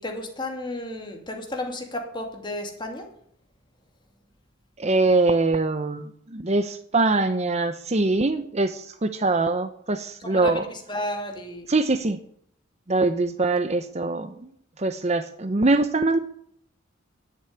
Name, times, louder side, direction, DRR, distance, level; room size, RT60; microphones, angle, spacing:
voice 1, 0.0-3.1 10.3-11.7, left 1 dB, 20° left, 2.8 m, -32 dB
voice 2, 4.8-10.6 11.7-12.2 12.9-14.5 14.8-16.2, right 3 dB, 35° right, 0.8 m, -23 dB
11.5 x 9.7 x 9.7 m
head